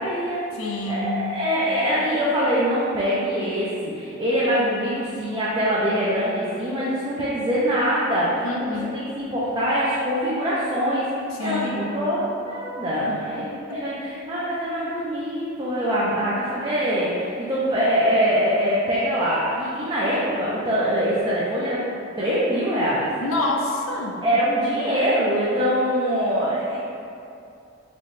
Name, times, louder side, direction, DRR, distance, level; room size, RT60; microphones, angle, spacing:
voice 1, 0.0-0.4 0.9-8.4 8.9-11.1 11.4-13.4 13.7-21.8 22.2-23.1 24.2-26.8, equal, 20° right, -9 dB, 0.4 m, -23 dB
voice 2, 0.5-1.2 8.4-8.9 11.3-11.9 13.0-13.2 13.5-13.8 16.2-16.5 23.2-24.2, left 2 dB, 80° left, 0 dB, 0.4 m, -28 dB
3.9 x 2.1 x 3.1 m, 2.6 s
head